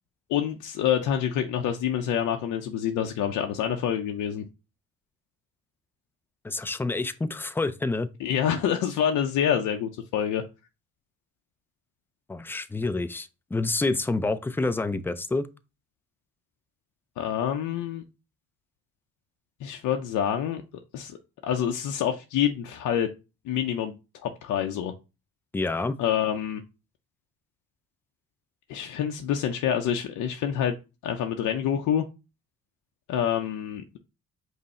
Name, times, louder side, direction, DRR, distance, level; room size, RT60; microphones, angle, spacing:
voice 1, 0.3-4.4 8.2-10.4 17.2-18.0 19.6-20.6 20.9-21.2 21.4-23.1 23.5-24.9 26.0-26.6 28.7-30.8 31.0-32.1 33.1-34.0, left 9 dB, 80° left, 0.5 m, -27 dB
voice 2, 6.4-8.1 12.3-15.5 25.5-26.0, left 3 dB, 10° left, 0.3 m, -28 dB
5.3 x 2.0 x 4.1 m
cardioid pair, 90°, 30 cm